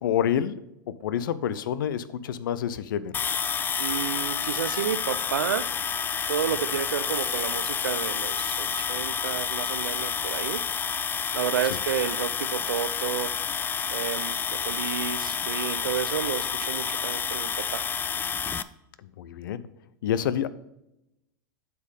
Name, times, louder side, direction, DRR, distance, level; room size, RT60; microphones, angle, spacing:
voice 1, 0.0-0.6 0.9-3.1 11.7-11.8 19.0-19.6 20.0-20.5, left 9 dB, 70° left, 16 dB, 0.6 m, -28 dB
sound 1, 3.1-18.6, left 7 dB, 20° left, 0.4 m, -29 dB
voice 2, 3.8-5.7 6.3-10.6 11.3-13.3 13.9-17.8, right 9 dB, 85° right, 15 dB, 0.5 m, -31 dB
8.3 x 4.6 x 5.3 m, 0.88 s
hypercardioid pair, 105°, 11 cm